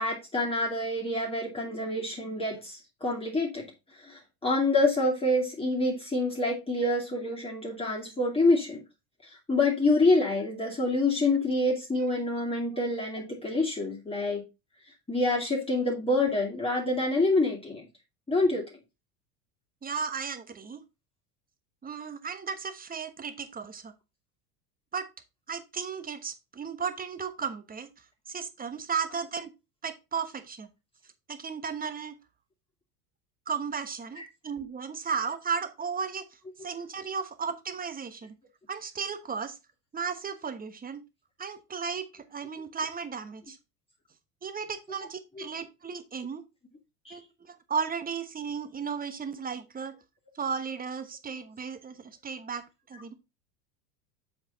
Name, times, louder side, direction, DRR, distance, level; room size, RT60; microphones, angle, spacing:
voice 1, 0.0-3.6 4.0-8.8 9.2-14.4 15.1-17.8 18.3-18.6 34.1-34.2 45.4-45.5 47.1-47.2, left 2 dB, 10° left, -2 dB, 2.4 m, -27 dB
voice 2, 19.8-20.8 21.8-23.9 24.9-25.1 25.5-27.9 28.3-29.5 29.8-30.7 31.3-32.2 33.5-36.3 36.6-38.4 38.7-39.6 39.9-41.0 41.4-43.6 44.4-46.4 47.1-49.9 50.3-52.6 52.9-53.1, right 6 dB, 15° right, 10 dB, 1.1 m, -35 dB
7.3 x 5.2 x 3.9 m, 0.26 s
figure-of-eight pair, 80°, 49 cm